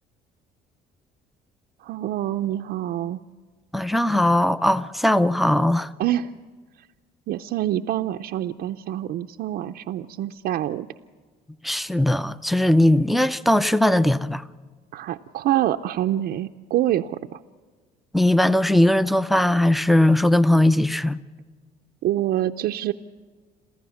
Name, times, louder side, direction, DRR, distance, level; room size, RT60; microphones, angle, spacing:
voice 1, 1.8-3.2 6.0-6.3 6.8-6.9 7.3-10.9 14.9-17.4 22.0-22.9, right 12 dB, 70° right, 0.6 m, -26 dB
voice 2, 3.7-5.9 11.6-14.4 18.1-21.2, left 1 dB, ahead, 0.5 m, -19 dB
28.0 x 14.5 x 7.1 m
cardioid pair, 110°, 17 cm